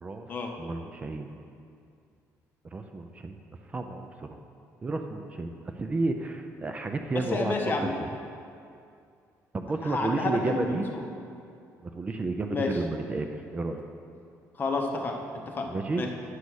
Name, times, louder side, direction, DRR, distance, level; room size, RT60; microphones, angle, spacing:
voice 1, 0.6-1.3 2.7-3.4 3.7-4.4 4.8-7.5 9.5-10.9 12.0-13.8 15.6-16.0, right 3 dB, 20° right, 5 dB, 0.4 m, -31 dB
voice 2, 7.1-8.0 9.8-11.0 12.5-12.8 14.6-15.7 16.0-16.1, left 3 dB, 30° left, 2 dB, 0.9 m, -30 dB
9.7 x 5.3 x 6.3 m, 2.4 s
cardioid pair, 150°, 6 cm